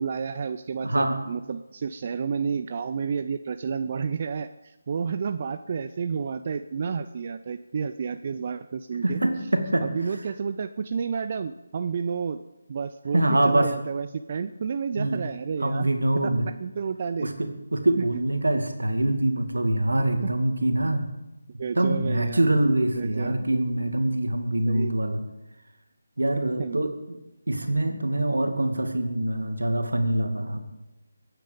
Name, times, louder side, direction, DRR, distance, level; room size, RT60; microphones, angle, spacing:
voice 1, 0.0-9.2 9.8-12.4 12.7-15.9 16.1-17.3 18.0-18.2 20.2-20.3 21.6-22.5 22.9-23.4 24.7-25.0 26.6-26.8, right 6 dB, 40° right, 10 dB, 0.5 m, -30 dB
voice 2, 0.8-1.2 9.0-9.9 13.1-13.7 15.0-15.2 15.6-16.5 17.2-21.1 21.8-25.2 26.2-27.2 27.5-30.6, right 1 dB, 80° right, 6 dB, 2.3 m, -24 dB
22.5 x 9.2 x 5.1 m, 1.0 s
figure-of-eight pair, 155°, 0 cm